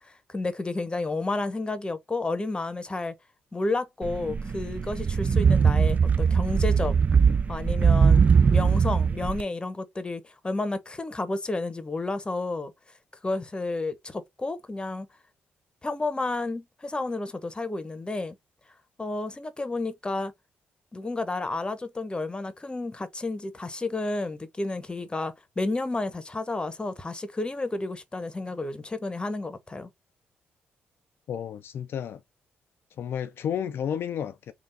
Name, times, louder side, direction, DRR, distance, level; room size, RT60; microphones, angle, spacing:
voice 1, 0.0-3.1 3.5-6.9 7.5-8.3 8.5-12.7 13.2-15.1 15.8-18.3 19.0-20.3 20.9-29.9, left 2 dB, 20° left, 0.9 m, -31 dB
sound 1, 4.0-9.4, right 6 dB, 40° right, 0.4 m, -21 dB
voice 2, 31.3-32.2 33.0-34.5, left 8 dB, 65° left, 0.4 m, -32 dB
3.5 x 2.4 x 4.0 m
supercardioid pair, 60°, 4 cm